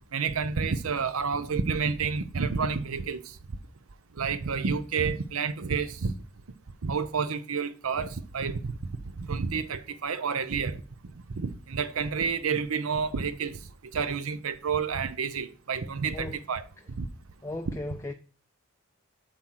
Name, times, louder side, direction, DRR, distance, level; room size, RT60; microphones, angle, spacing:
voice 1, 0.1-3.2 4.2-6.1 6.8-8.7 9.2-10.8 11.4-13.6 13.9-16.6 17.0-17.1 17.7-17.8, right 5 dB, 80° right, 0.7 m, -29 dB
voice 2, 17.4-18.1, left 2 dB, 15° left, 0.3 m, -36 dB
7.6 x 4.4 x 6.2 m
head